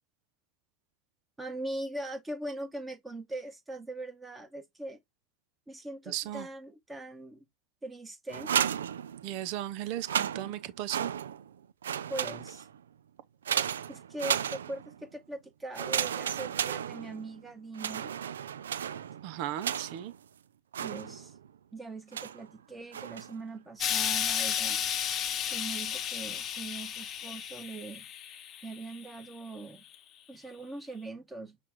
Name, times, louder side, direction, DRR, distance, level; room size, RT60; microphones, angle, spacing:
voice 1, 1.4-5.0 5.7-7.4 7.8-8.5 12.1-12.7 13.9-18.1 20.8-21.4 21.7-24.8 25.5-28.1 28.6-29.8 30.3-31.6, right 2 dB, 15° right, 1.7 m, -41 dB
voice 2, 6.1-6.5 9.2-11.1 19.2-20.1, right 13 dB, 60° right, 0.7 m, -36 dB
sound 1, 8.3-9.5 9.9-11.5 11.8-12.8 13.5-15.0 15.7-17.4 17.7-20.2 20.7-21.5 22.1-22.5 22.9-23.4, right 9 dB, 85° right, 0.3 m, -34 dB
Explosion, 23.8-29.1 29.9-30.0, left 9 dB, 40° left, 0.7 m, -33 dB
5.8 x 2.4 x 3.0 m
hypercardioid pair, 95°, 0 cm